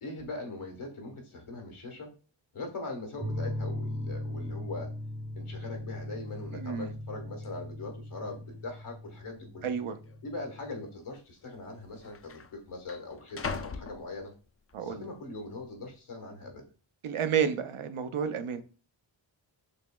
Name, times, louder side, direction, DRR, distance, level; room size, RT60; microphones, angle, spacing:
voice 1, 0.0-2.1 2.5-4.9 5.4-9.7 10.2-14.3 14.8-16.6, left 2 dB, 80° left, 1.4 m, -41 dB
sound 1, 3.2-10.9, left 1 dB, 15° right, 0.6 m, -39 dB
sound 2, 6.0-6.1 6.3-6.7 7.4-7.5 8.3-8.8 9.1-9.2 10.0-10.2 11.2-11.3 11.5-14.7 15.2-15.7, left 5 dB, 30° left, 0.4 m, -42 dB
voice 2, 6.5-6.9 9.6-10.0 14.7-15.0 17.0-18.6, right 7 dB, 80° right, 0.6 m, -30 dB
6.6 x 3.0 x 2.2 m
cardioid pair, 45°, 49 cm